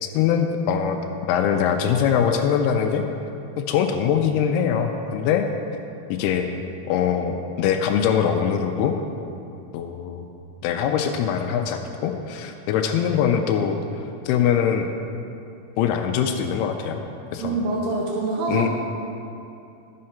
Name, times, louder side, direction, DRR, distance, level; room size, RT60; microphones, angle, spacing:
voice 1, 0.0-1.0 1.3-3.1 3.6-5.5 6.1-6.5 6.9-9.0 9.7-10.3 10.6-13.8 14.3-14.9 15.8-17.0 17.3-17.5 18.5-18.7, left 8 dB, 90° left, 4 dB, 2.6 m, -22 dB
voice 2, 17.4-18.7, right 3 dB, 80° right, -2 dB, 3.0 m, -25 dB
12.5 x 7.6 x 5.7 m, 2.7 s
omnidirectional pair, 4.6 m